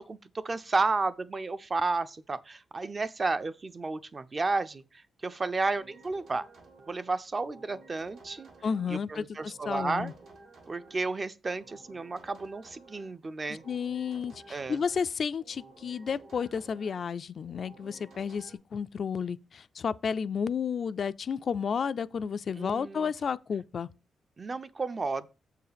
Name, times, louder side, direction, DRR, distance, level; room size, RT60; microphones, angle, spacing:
voice 1, 0.0-6.5 6.9-8.5 8.9-10.1 10.7-13.6 14.5-14.8 22.6-23.1 24.4-25.3, right 3 dB, 30° right, 0.4 m, -32 dB
sound 1, 5.7-9.0 9.4-11.1 11.5-13.2 13.4-15.1 15.4-17.1 17.4-18.5, right 3 dB, 80° right, 2.1 m, -54 dB
voice 2, 8.6-10.1 13.5-23.9, left 6 dB, 50° left, 0.3 m, -32 dB
7.1 x 4.6 x 5.0 m
cardioid pair, 125°, 0 cm